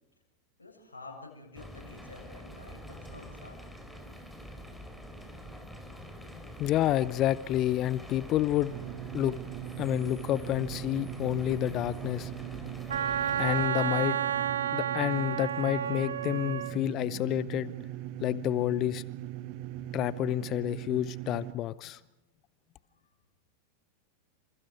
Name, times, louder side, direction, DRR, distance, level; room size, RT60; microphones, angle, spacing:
voice 1, 0.6-3.6, left 3 dB, 75° left, 7.5 m, -49 dB
sound 1, 1.5-13.7, equal, ahead, 3.7 m, -46 dB
voice 2, 6.6-8.7 9.1-9.4 9.8-12.3 13.4-14.2 14.7-17.7 18.2-19.0 19.9-22.0, left 13 dB, 35° left, 0.7 m, -29 dB
sound 2, 8.7-21.5, right 13 dB, 45° right, 1.4 m, -40 dB
Wind instrument woodwind instrument, 12.9-16.8, right 9 dB, 65° right, 1.1 m, -31 dB
29.0 x 27.5 x 4.8 m
figure-of-eight pair, 90°, 0 cm